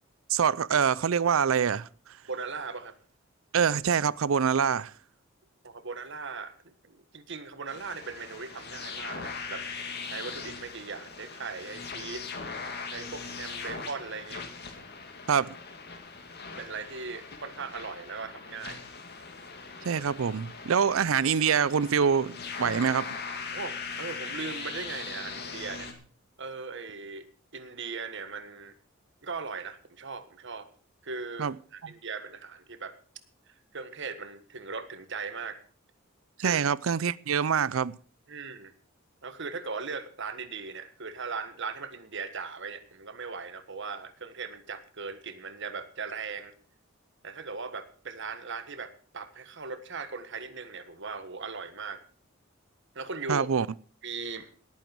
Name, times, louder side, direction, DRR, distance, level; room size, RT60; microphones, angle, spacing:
voice 1, 0.3-1.9 3.5-4.9 15.3-15.5 19.8-23.1 31.4-31.6 36.4-38.0 53.3-53.7, right 7 dB, 85° right, 0.5 m, -25 dB
voice 2, 2.3-2.9 5.6-9.6 10.0-12.3 12.9-14.4 16.5-18.8 23.5-25.9 26.4-27.2 27.5-28.7 29.2-30.7 31.0-33.0 33.5-35.6 36.4-36.6 38.3-38.7 39.2-46.5 47.2-52.0 52.9-53.5 54.0-54.5, right 4 dB, 65° right, 1.6 m, -39 dB
sound 1, 7.7-25.9, left 5 dB, 55° left, 2.4 m, -40 dB
18.5 x 9.2 x 4.6 m
head